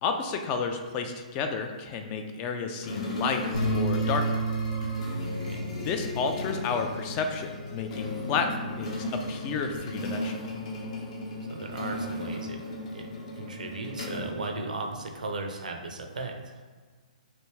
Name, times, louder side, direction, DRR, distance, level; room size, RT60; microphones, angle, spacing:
voice 1, 0.0-4.4 5.8-10.5, left 5 dB, 30° left, 5 dB, 0.3 m, -31 dB
sound 1, 2.8-15.1, left 1 dB, 55° left, 0.8 m, -36 dB
Bass guitar, 3.5-8.0 8.4-9.8, right 2 dB, 85° left, 0.6 m, -33 dB
voice 2, 5.1-5.6 11.4-12.6 12.9-13.1 13.3-16.6, right 3 dB, 75° right, 4 dB, 0.5 m, -36 dB
3.3 x 2.6 x 3.1 m, 1.5 s
figure-of-eight pair, 125°, 4 cm